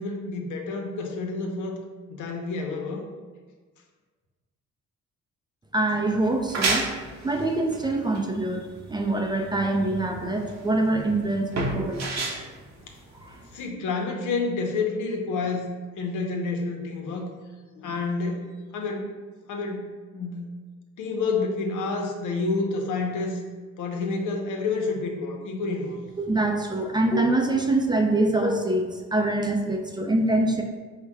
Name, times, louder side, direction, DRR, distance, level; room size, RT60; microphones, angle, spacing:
voice 1, 0.0-1.8 2.1-3.0 13.5-15.7 16.0-17.3 17.8-19.1 19.5-20.5 21.0-23.4 23.8-26.0, left 3 dB, 80° left, 1 dB, 0.8 m, -29 dB
voice 2, 5.7-6.9 7.2-12.1 13.2-13.5 26.2-30.6, right 2 dB, 15° right, 2 dB, 0.5 m, -24 dB
sound 1, 6.2-13.6, right 2 dB, 60° right, 0.9 m, -31 dB
4.8 x 2.1 x 4.6 m, 1.4 s
cardioid pair, 90°, 30 cm